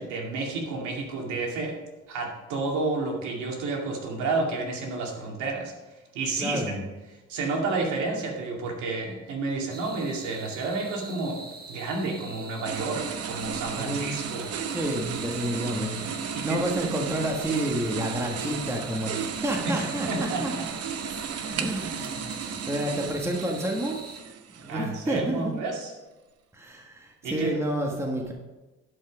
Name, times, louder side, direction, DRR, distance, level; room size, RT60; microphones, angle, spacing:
voice 1, 0.0-1.8 2.1-5.7 6.1-6.6 7.3-11.4 11.7-14.5 16.3-16.6 19.6-20.6 24.7-25.9 27.2-27.5, right 3 dB, 80° right, 0 dB, 2.5 m, -30 dB
voice 2, 6.4-6.9 13.7-14.2 14.7-20.5 21.4-24.0 24.6-25.5 26.5-28.3, right 1 dB, 10° right, 0 dB, 1.5 m, -30 dB
sound 1, 9.7-24.2, right 3 dB, 30° right, 1.6 m, -44 dB
sound 2, 12.6-24.9, right 6 dB, 55° right, 0.9 m, -34 dB
11.5 x 5.5 x 5.2 m, 1.1 s
cardioid pair, 100°, 29 cm